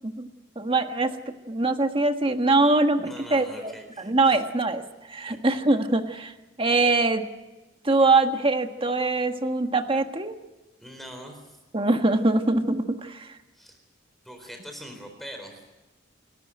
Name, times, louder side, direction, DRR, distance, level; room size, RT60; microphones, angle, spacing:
voice 1, 0.5-4.8 5.1-6.3 6.6-7.2 7.8-10.4 11.7-13.3, right 2 dB, 25° right, 7 dB, 1.5 m, -23 dB
voice 2, 3.0-4.4 5.3-5.4 10.8-11.6 13.5-13.8 14.2-15.8, equal, ahead, 4 dB, 4.1 m, -42 dB
28.5 x 14.0 x 9.3 m, 1.1 s
head